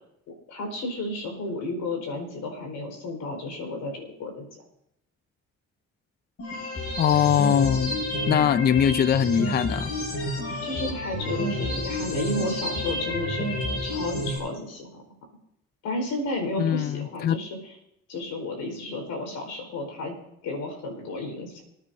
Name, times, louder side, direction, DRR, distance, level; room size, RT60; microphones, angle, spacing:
voice 1, 0.5-4.6 10.6-14.9 15.8-17.7 18.1-20.1 20.4-21.6, left 2 dB, 85° left, 4.7 m, -32 dB
sound 1, 6.4-14.4, left 1 dB, 55° left, 6.4 m, -30 dB
voice 2, 7.0-8.0 8.3-9.9 16.6-17.4, left 9 dB, 35° left, 0.4 m, -22 dB
26.5 x 9.7 x 2.7 m
cardioid pair, 90°, 30 cm